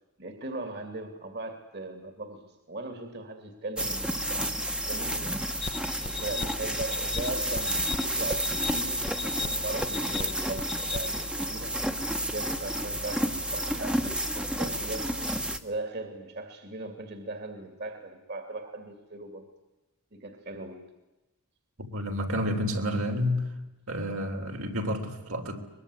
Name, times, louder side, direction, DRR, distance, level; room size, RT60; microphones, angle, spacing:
voice 1, 0.2-4.6 4.9-5.4 6.0-11.7 12.3-15.1 15.6-19.5 20.1-20.9, right 2 dB, 50° right, 7 dB, 2.6 m, -38 dB
sound 1, 3.8-15.6, right 1 dB, 5° right, 1.2 m, -31 dB
sound 2, 5.6-11.3, left 5 dB, 25° left, 0.8 m, -37 dB
voice 2, 21.8-23.5 23.9-25.6, left 1 dB, 75° right, 3 dB, 3.6 m, -30 dB
23.5 x 21.5 x 9.8 m, 1.0 s
head